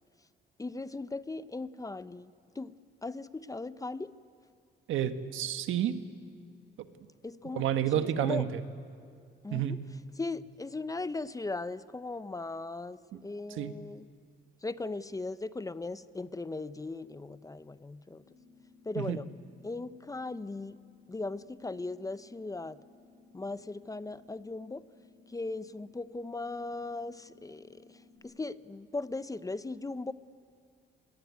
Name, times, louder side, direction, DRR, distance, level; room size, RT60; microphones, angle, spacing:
voice 1, 0.6-2.8 3.0-4.1 7.2-7.6 7.9-8.5 9.4-9.8 10.2-14.1 14.6-18.2 18.8-19.3 19.6-20.8 21.1-22.8 23.3-24.8 25.3-30.1, left 3 dB, 15° left, 15 dB, 0.7 m, -38 dB
voice 2, 4.9-6.0 7.5-8.6 9.5-9.8 13.6-13.7 19.0-19.2, right 10 dB, 80° right, 9 dB, 1.4 m, -30 dB
sound 1, 18.2-28.2, left 3 dB, 85° left, 7.0 m, -60 dB
24.0 x 20.5 x 9.6 m, 2.3 s
cardioid pair, 90°, 20 cm